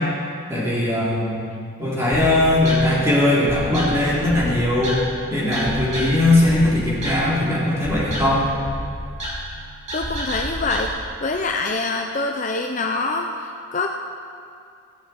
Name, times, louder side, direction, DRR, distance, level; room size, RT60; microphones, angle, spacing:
voice 1, 0.5-1.5 1.8-5.0 5.3-8.4, left 1 dB, 15° right, -7 dB, 3.7 m, -19 dB
sound 1, 2.1-10.8, equal, 30° right, 3.3 m, -31 dB
voice 2, 9.9-10.9 11.2-13.9, left 3 dB, 35° left, 3 dB, 0.6 m, -25 dB
15.5 x 15.0 x 4.6 m, 2.4 s
head